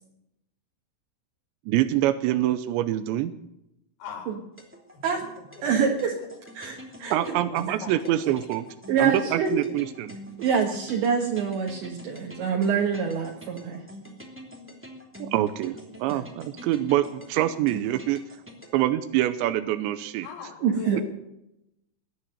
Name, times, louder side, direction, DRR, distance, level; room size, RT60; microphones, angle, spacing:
voice 1, 1.7-3.3 7.1-8.6 9.0-10.1 15.2-18.2 18.7-20.3, right 13 dB, 85° right, 11 dB, 2.6 m, -25 dB
voice 2, 4.0-4.4 4.9-5.1 5.6-5.7 7.1-8.3 8.6-8.7 20.2-21.0, left 6 dB, 90° left, 1 dB, 6.0 m, -40 dB
sound 1, 4.6-18.8, equal, 10° right, 0.6 m, -45 dB
voice 3, 5.6-6.1 6.6-7.4 8.9-9.6 10.4-13.8 16.1-16.2 20.6-21.0, right 6 dB, 65° right, 0 dB, 3.5 m, -26 dB
20.5 x 10.0 x 6.7 m, 0.86 s
omnidirectional pair, 5.9 m